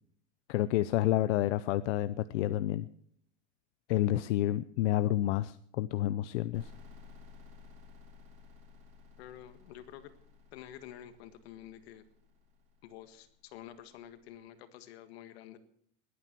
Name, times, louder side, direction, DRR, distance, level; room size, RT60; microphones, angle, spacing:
voice 1, 0.5-2.9 3.9-6.7, left 14 dB, 85° left, 13 dB, 0.7 m, -29 dB
sound 1, 6.5-14.1, left 4 dB, 20° right, 4.4 m, -56 dB
voice 2, 9.2-10.1 10.5-12.0 12.8-15.6, left 11 dB, 60° left, 10 dB, 1.8 m, -49 dB
21.0 x 9.3 x 6.1 m, 0.67 s
supercardioid pair, 180°, 35 cm